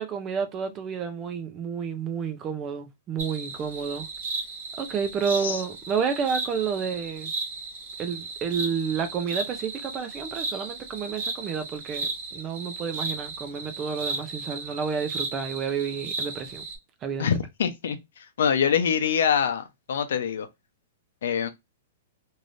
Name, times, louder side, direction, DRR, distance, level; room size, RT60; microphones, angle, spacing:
voice 1, 0.0-4.1 4.8-7.3 8.0-16.6 17.0-17.3, right 6 dB, 15° right, 0.4 m, -30 dB
sound 1, 3.2-16.8, right 3 dB, 40° right, 1.2 m, -35 dB
voice 2, 17.2-18.0 18.4-20.5 21.2-21.5, left 7 dB, 65° left, 0.6 m, -24 dB
3.3 x 2.7 x 2.5 m
hypercardioid pair, 175°, 0 cm